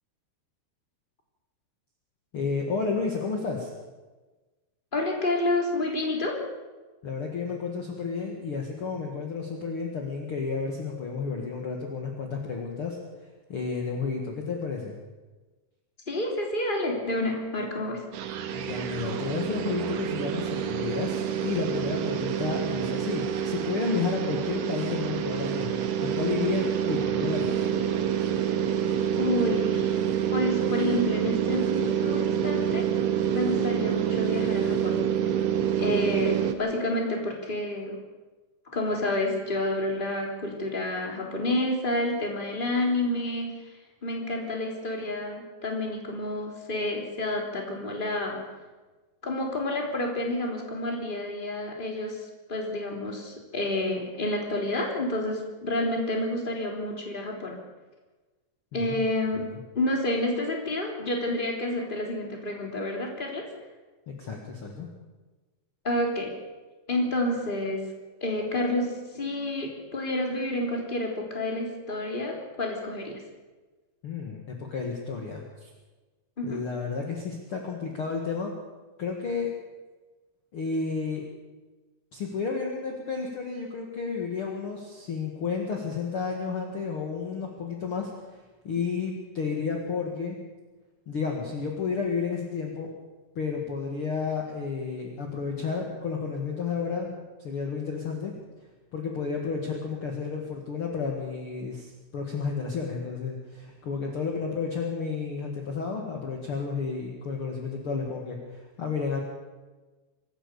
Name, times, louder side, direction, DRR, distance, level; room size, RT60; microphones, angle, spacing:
voice 1, 2.3-3.7 7.0-13.0 13.5-14.9 18.5-27.7 58.7-59.0 59.3-59.6 64.1-64.9 74.0-75.7 76.4-78.5 79.0-79.5 80.5-81.2 82.1-88.1 88.6-90.4 91.1-92.9 93.4-98.3 98.9-109.2, left 5 dB, 50° left, 1 dB, 1.7 m, -31 dB
voice 2, 4.9-6.4 16.1-18.0 29.2-29.9 30.3-32.9 33.3-35.0 35.8-38.0 38.7-43.5 44.0-48.4 49.2-57.6 58.7-59.4 59.7-63.4 65.8-66.3 66.9-67.9 68.2-73.2 76.4-76.6, left 1 dB, 15° left, 1 dB, 2.7 m, -29 dB
sound 1, 18.1-36.5, right 9 dB, 75° right, 3.8 m, -27 dB
25.0 x 15.0 x 7.0 m, 1.2 s
omnidirectional pair, 5.4 m